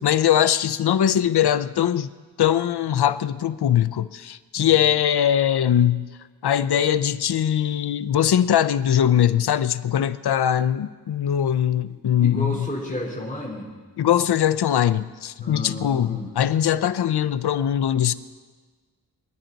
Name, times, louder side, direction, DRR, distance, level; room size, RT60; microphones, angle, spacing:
voice 1, 0.0-2.1 2.4-6.1 6.4-12.7 14.0-18.1, left 10 dB, 90° left, 14 dB, 0.6 m, -21 dB
voice 2, 12.3-13.7 15.4-16.3, left 1 dB, 20° left, -4 dB, 3.6 m, -32 dB
26.5 x 10.5 x 4.0 m, 1.5 s
wide cardioid pair, 135°, 38 cm